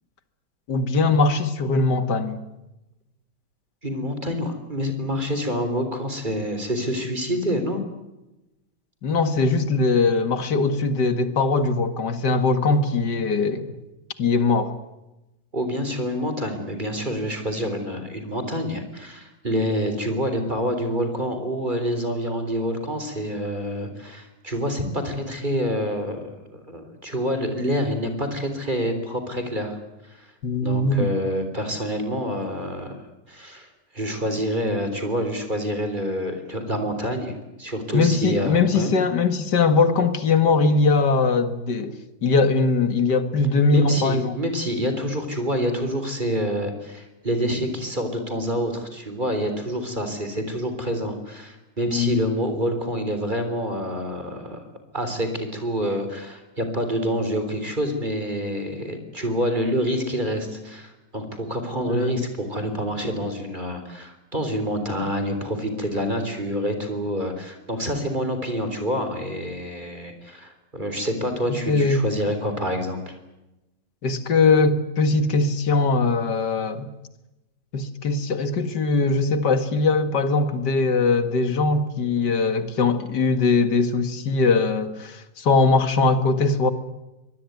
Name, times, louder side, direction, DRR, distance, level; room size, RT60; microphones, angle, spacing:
voice 1, 0.7-2.4 9.0-13.7 14.2-14.7 30.4-31.1 37.9-42.0 42.2-44.4 51.9-52.2 61.9-62.1 71.7-72.1 74.0-76.9 77.7-86.7, left 3 dB, 65° left, 2.4 m, -21 dB
voice 2, 3.8-7.8 15.5-29.8 30.1-30.3 30.6-33.0 33.3-33.7 33.9-38.9 43.7-54.6 54.9-73.2, equal, 25° right, 3.9 m, -27 dB
24.0 x 20.5 x 9.5 m
omnidirectional pair, 1.9 m